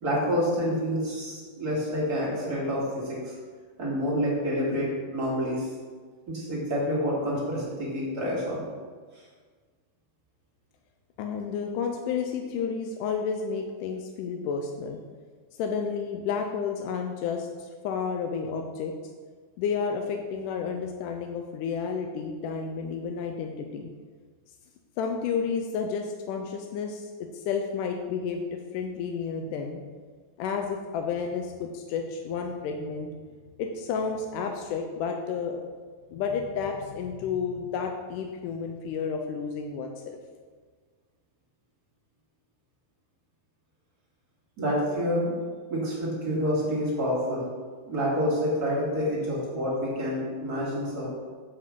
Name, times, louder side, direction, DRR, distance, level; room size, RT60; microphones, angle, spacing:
voice 1, 0.0-3.3 3.8-5.7 6.3-8.6 44.6-45.3 45.7-47.4 47.9-51.1, equal, 30° right, -5 dB, 2.5 m, -28 dB
voice 2, 11.2-15.0 15.6-18.9 19.6-23.9 25.0-29.8 30.4-33.1 33.6-35.6 36.1-40.2, left 6 dB, 90° left, 3 dB, 2.2 m, -31 dB
9.8 x 7.5 x 3.7 m, 1.5 s
omnidirectional pair, 3.7 m